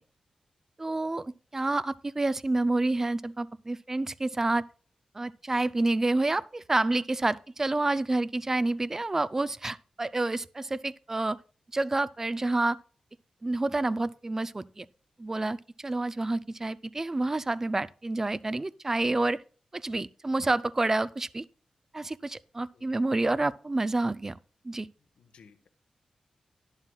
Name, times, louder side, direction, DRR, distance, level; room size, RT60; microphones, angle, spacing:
voice 1, 0.8-4.6 5.1-11.4 11.7-12.8 13.4-14.8 15.2-19.4 19.7-21.5 21.9-24.4 24.6-24.9, right 2 dB, 20° right, 0.4 m, -28 dB
voice 2, 25.0-25.7, left 5 dB, 75° left, 1.2 m, -58 dB
11.0 x 11.0 x 2.3 m
wide cardioid pair, 110°, 2 cm